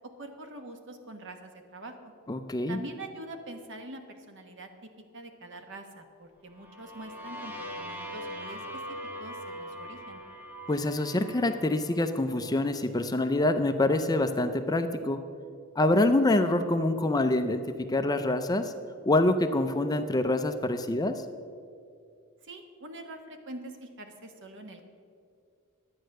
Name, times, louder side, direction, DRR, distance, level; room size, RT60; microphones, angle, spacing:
voice 1, 0.2-2.1 2.7-10.2 22.4-24.9, right 1 dB, 60° right, 6 dB, 1.2 m, -44 dB
voice 2, 2.3-2.8 10.7-15.2 15.8-17.6 17.9-18.7 19.0-21.1, left 2 dB, 20° left, 8 dB, 0.5 m, -26 dB
sound 1, 6.5-12.4, equal, 10° right, 1.3 m, -41 dB
11.0 x 9.0 x 6.5 m, 2.3 s
head